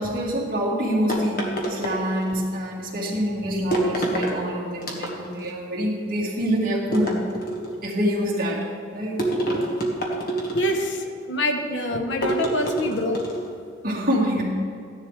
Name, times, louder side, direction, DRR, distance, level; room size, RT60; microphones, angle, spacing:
voice 1, 0.0-7.2 7.8-8.7 8.9-9.2 13.8-14.4, equal, 45° right, -6 dB, 2.4 m, -26 dB
sound 1, 1.1-2.5 3.7-4.4 4.8-5.5 6.9-7.8 9.2-11.0 12.2-13.5, right 1 dB, 50° left, 1.5 m, -27 dB
voice 2, 10.5-13.2, left 1 dB, 70° left, 4 dB, 1.0 m, -25 dB
14.0 x 10.5 x 3.3 m, 2.4 s
head